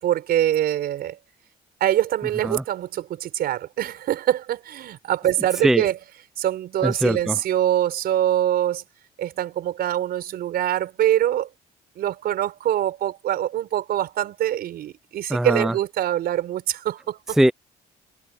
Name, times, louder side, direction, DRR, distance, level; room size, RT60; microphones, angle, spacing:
voice 1, 0.0-1.2 1.8-6.0 6.4-8.8 9.2-11.5 12.0-17.4, right 12 dB, 65° right, 5.2 m, -24 dB
voice 2, 6.8-7.4 15.3-15.7 17.4-17.5, right 1 dB, ahead, 0.4 m, -20 dB
cardioid pair, 110°, 17 cm